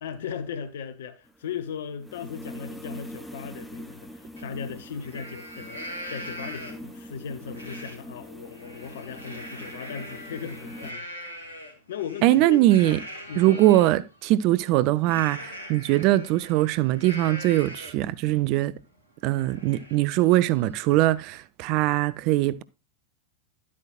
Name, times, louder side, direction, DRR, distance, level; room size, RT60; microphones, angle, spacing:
voice 1, 0.0-11.4 11.9-13.0 13.3-13.6, left 7 dB, 60° left, 0.8 m, -37 dB
sound 1, 1.3-10.9, equal, ahead, 0.8 m, -43 dB
Livestock farm animals working animals, 4.4-4.5 4.9-7.0 7.5-8.0 8.4-13.9 15.0-18.1 18.5-18.6 19.0-21.4, equal, 80° left, 2.2 m, -41 dB
voice 2, 12.2-13.0 13.4-18.7 19.2-22.6, right 15 dB, 40° right, 0.4 m, -21 dB
11.5 x 8.4 x 2.4 m
figure-of-eight pair, 90°, 0 cm